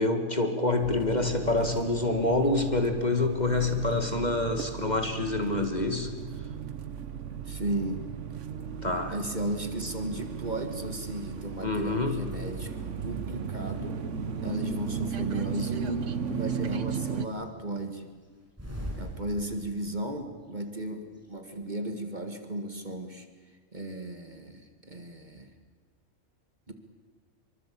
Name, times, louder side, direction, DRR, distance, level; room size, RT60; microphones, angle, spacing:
voice 1, 0.0-6.1 8.8-9.2 11.6-12.2, left 2 dB, 30° left, 6 dB, 2.0 m, -27 dB
sound 1, 0.8-17.2, right 7 dB, 60° right, 1.4 m, -36 dB
voice 2, 7.5-8.1 9.1-14.0 14.4-18.1 19.0-23.3 23.7-25.5 26.7-26.8, right 1 dB, 30° right, 6 dB, 2.1 m, -35 dB
sound 2, 13.8-13.9 14.3-15.2 15.7-16.6 16.8-20.0 20.2-20.3 20.5-21.3, equal, 10° right, 5.3 m, -41 dB
25.0 x 24.0 x 8.6 m, 1.5 s
omnidirectional pair, 1.4 m